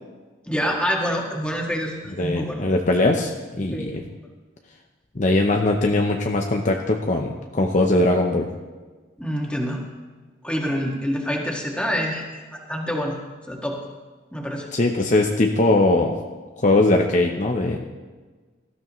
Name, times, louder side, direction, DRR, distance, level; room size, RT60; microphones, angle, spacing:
voice 1, 0.5-2.6 3.7-4.2 9.2-9.8 10.4-13.2 13.5-13.8 14.3-14.7, equal, 5° left, -1 dB, 1.9 m, -27 dB
voice 2, 2.2-4.0 5.2-8.5 14.7-16.1 16.6-17.8, left 2 dB, 40° left, 2 dB, 0.8 m, -20 dB
18.5 x 13.0 x 3.1 m, 1.4 s
head